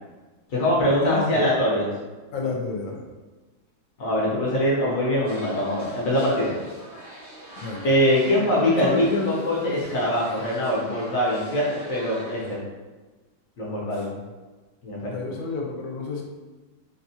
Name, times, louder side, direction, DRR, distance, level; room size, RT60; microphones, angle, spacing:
voice 1, 0.5-1.9 4.0-6.6 7.8-12.6 13.6-14.2 14.8-15.1, left 1 dB, 55° left, -5 dB, 1.1 m, -23 dB
voice 2, 1.0-1.5 2.3-3.1 7.6-7.9 8.6-9.3 13.9-14.1 15.1-16.2, left 3 dB, 80° left, 0 dB, 1.3 m, -30 dB
sound 1, 5.2-12.6, equal, 50° right, 0.6 m, -43 dB
4.2 x 2.3 x 2.7 m, 1.2 s
omnidirectional pair, 2.1 m